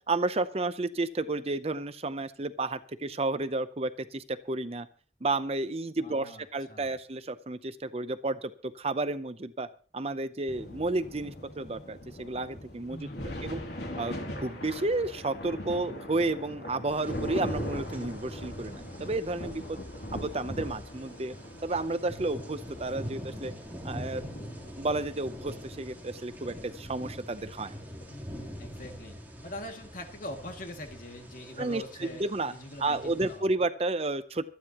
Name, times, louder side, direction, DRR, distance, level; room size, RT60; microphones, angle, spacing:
voice 1, 0.1-4.9 5.2-9.7 9.9-13.0 13.4-13.6 14.0-14.1 14.4-19.8 20.1-21.3 21.6-23.5 23.8-24.2 24.8-27.7 31.6-32.5 32.8-34.4, right 2 dB, 35° right, 12 dB, 0.7 m, -31 dB
voice 2, 6.0-6.9 12.9-13.4 28.1-29.2 29.4-33.5, left 1 dB, 50° left, 3 dB, 2.3 m, -43 dB
sound 1, 10.5-29.0, equal, 70° left, 2.9 m, -41 dB
sound 2, 16.9-33.4, equal, 10° right, 3.5 m, -45 dB
25.0 x 9.8 x 3.0 m, 0.40 s
head